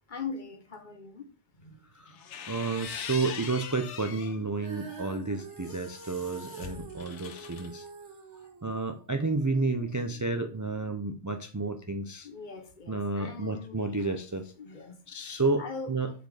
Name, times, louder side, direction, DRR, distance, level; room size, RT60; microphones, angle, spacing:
voice 1, 0.1-1.3 1.6-1.8 2.1-2.2 12.2-14.0 14.6-15.0 15.6-15.9, left 5 dB, 40° left, 1.0 m, -41 dB
sound 1, 2.1-4.4 4.9-7.7, left 7 dB, 70° left, 1.1 m, -42 dB
voice 2, 2.5-7.9 8.6-12.3 12.9-14.5 15.1-16.1, right 3 dB, 30° right, 0.3 m, -31 dB
Female singing, 4.6-10.8, right 6 dB, 70° right, 1.5 m, -46 dB
6.7 x 4.3 x 4.9 m
omnidirectional pair, 1.3 m